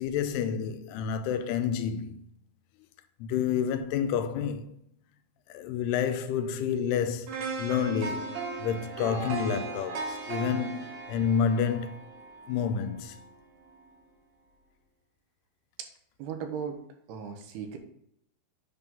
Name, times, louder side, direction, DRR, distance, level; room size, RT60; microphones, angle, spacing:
voice 1, 0.0-2.2 3.2-4.7 5.5-11.9 12.5-13.2, left 7 dB, 85° left, 2.7 m, -29 dB
sound 1, 7.3-13.3 13.7-13.8, right 4 dB, 70° right, 2.9 m, -37 dB
voice 2, 16.2-16.8 17.1-17.8, right 7 dB, 85° right, 3.0 m, -36 dB
8.3 x 3.7 x 5.7 m
omnidirectional pair, 4.6 m